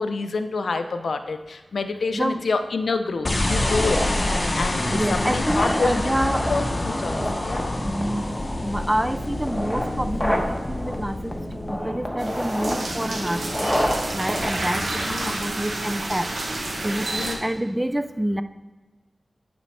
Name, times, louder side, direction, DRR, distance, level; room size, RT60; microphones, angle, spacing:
voice 1, 0.0-4.0 4.6-6.0 6.5-7.7 15.0-15.4 17.1-17.4, left 3 dB, 80° left, 8 dB, 0.5 m, -27 dB
voice 2, 2.1-2.4 4.9-6.5 7.8-8.3 8.6-11.4 11.7-13.4 14.1-16.3 16.8-17.1 17.4-18.4, right 1 dB, 10° right, 10 dB, 0.3 m, -27 dB
sound 1, 3.2-12.6, left 1 dB, 35° left, 0.7 m, -27 dB
sound 2, 3.6-15.6, equal, 5° left, 1.1 m, -30 dB
sound 3, 12.2-17.4, right 2 dB, 75° right, 1.0 m, -30 dB
10.0 x 5.1 x 3.3 m, 1.3 s
wide cardioid pair, 90°, 0 cm